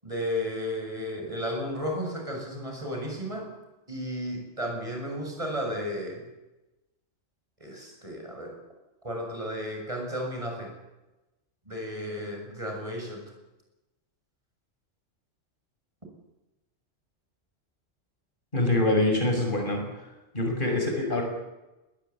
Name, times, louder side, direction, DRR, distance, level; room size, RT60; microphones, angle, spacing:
voice 1, 0.0-3.5 3.9-6.2 7.6-8.6 9.0-10.7 11.7-13.3, equal, 30° right, 2 dB, 7.1 m, -33 dB
voice 2, 18.5-19.8 20.3-21.2, left 1 dB, 45° left, 3 dB, 6.5 m, -24 dB
20.5 x 19.0 x 9.7 m, 1.0 s
omnidirectional pair, 1.2 m